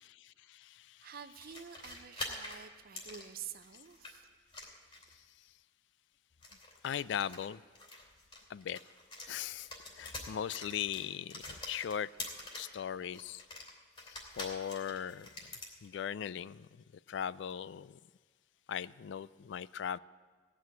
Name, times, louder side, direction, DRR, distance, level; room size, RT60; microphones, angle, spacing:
voice 1, 0.0-1.4 6.8-7.6 8.5-8.8 9.3-9.7 10.0-12.1 12.6-13.4 14.1-15.3 15.8-16.7 17.1-18.0 18.7-20.0, left 8 dB, 70° left, 0.3 m, -39 dB
voice 2, 1.0-4.3 12.4-12.7, right 8 dB, 55° right, 0.6 m, -49 dB
sound 1, 1.3-4.1 4.5-5.2 6.3-9.3 9.6-12.8 13.1-15.7, left 2 dB, 30° left, 2.8 m, -46 dB
17.0 x 6.2 x 9.2 m
head